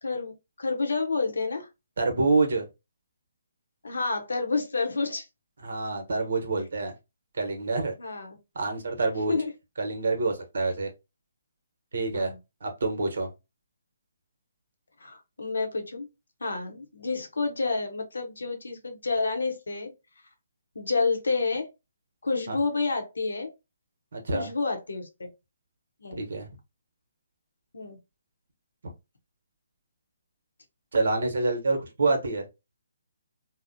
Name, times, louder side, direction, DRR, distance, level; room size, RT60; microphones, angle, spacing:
voice 1, 0.0-1.7 3.8-5.3 8.0-8.4 9.3-9.5 12.1-12.4 15.0-16.1 16.4-19.9 20.7-21.7 22.2-23.5 24.3-25.3 26.0-26.2 27.7-28.0, left 4 dB, 85° left, 0.8 m, -29 dB
voice 2, 2.0-2.7 5.6-6.9 7.4-7.9 8.5-9.4 9.8-10.9 11.9-12.3 12.6-13.3 22.5-22.6 24.1-24.5 26.2-26.5 30.9-32.4, right 3 dB, 65° right, 0.9 m, -27 dB
2.8 x 2.0 x 2.5 m
hypercardioid pair, 150°, 0 cm